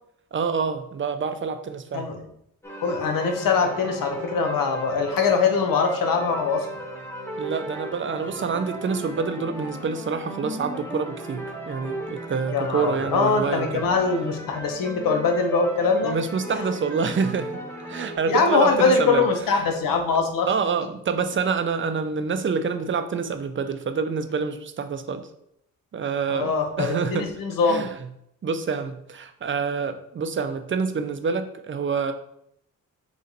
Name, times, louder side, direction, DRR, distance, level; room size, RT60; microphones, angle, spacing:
voice 1, 0.3-2.1 7.4-13.8 16.0-17.6 17.9-19.3 19.5-19.6 20.5-25.3 25.9-27.3 27.7-27.9 28.4-32.1, right 5 dB, 40° right, 9 dB, 0.5 m, -27 dB
sound 1, 2.6-18.2, right 1 dB, 5° left, 1.0 m, -36 dB
voice 2, 2.8-6.7 12.5-16.1 18.3-20.5 26.3-27.9, left 4 dB, 85° left, 5 dB, 0.8 m, -22 dB
3.9 x 3.1 x 4.0 m, 0.75 s
cardioid pair, 80°, 32 cm